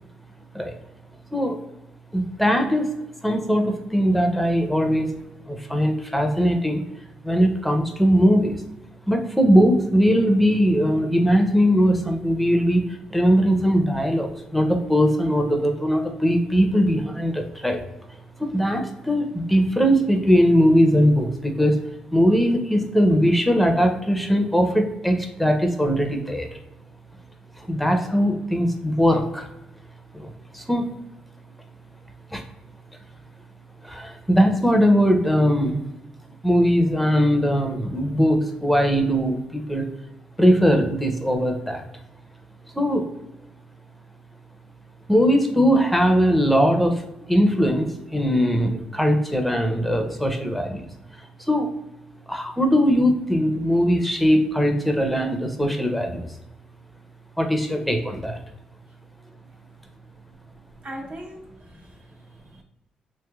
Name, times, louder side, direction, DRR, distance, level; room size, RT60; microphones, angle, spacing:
voice 1, 2.1-2.9 3.2-5.1 5.5-6.8 7.2-8.6 9.1-12.8 13.1-17.8 18.4-21.8 22.1-26.5 27.6-29.5 30.1-30.9 32.3-32.4 33.8-35.8 36.4-39.9 40.4-41.8 42.7-43.1 45.1-50.9 51.5-51.7 52.3-56.3 57.4-58.4, equal, ahead, 4 dB, 0.5 m, -20 dB
voice 2, 60.8-62.6, right 1 dB, 60° right, 0 dB, 0.8 m, -40 dB
3.2 x 3.0 x 2.3 m, 0.90 s
cardioid pair, 85°, 3 cm